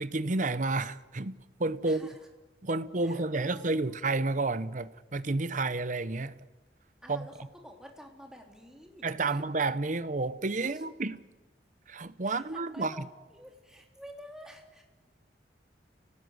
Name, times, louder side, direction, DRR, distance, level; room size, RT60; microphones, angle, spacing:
voice 1, 0.0-2.1 2.6-6.4 7.1-7.3 9.0-11.2 11.9-12.9, right 3 dB, 45° right, 0.9 m, -30 dB
voice 2, 1.8-2.2 2.7-2.8 3.0-4.0 7.0-9.4 10.6-10.8 12.2-14.8, equal, 5° right, 3.3 m, -50 dB
28.0 x 18.5 x 8.1 m
head